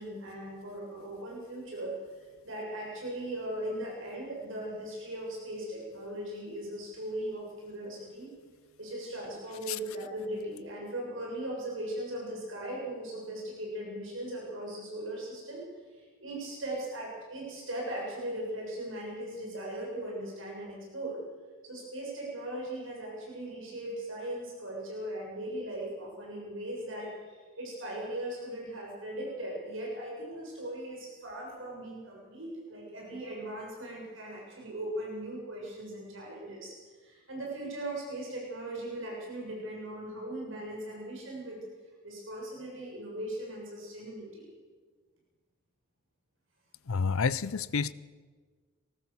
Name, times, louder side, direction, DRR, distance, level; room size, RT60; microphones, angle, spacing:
voice 1, 0.0-8.3 8.8-21.2 21.6-36.7 37.0-41.6 42.0-44.5, right 1 dB, 70° right, -2 dB, 6.9 m, -39 dB
voice 2, 46.9-47.9, left 5 dB, 90° left, 18 dB, 0.6 m, -29 dB
20.0 x 18.0 x 7.2 m, 1.5 s
head